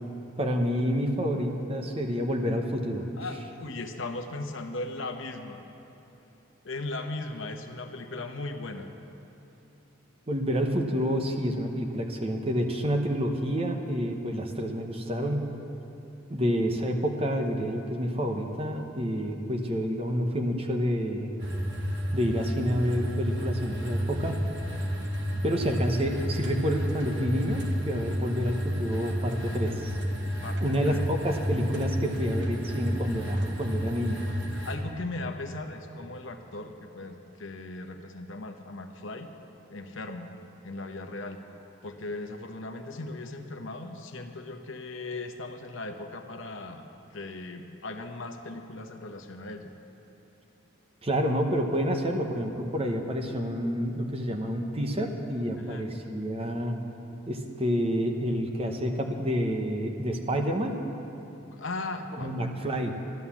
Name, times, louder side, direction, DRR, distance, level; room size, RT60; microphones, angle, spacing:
voice 1, 0.4-3.2 10.3-15.4 16.3-21.4 22.1-24.4 25.4-29.9 30.6-34.2 51.0-56.8 57.3-60.8 62.2-63.0, equal, 25° right, 3 dB, 0.9 m, -28 dB
voice 2, 3.2-5.6 6.6-8.9 16.3-16.4 30.4-31.0 34.5-39.3 39.7-40.3 40.6-41.4 41.8-46.8 47.1-49.7 55.5-55.9 61.5-62.4, left 2 dB, 60° left, 5 dB, 0.9 m, -38 dB
sound 1, 21.4-34.8, equal, 55° right, 1.3 m, -31 dB
13.0 x 11.0 x 7.2 m, 3.0 s
head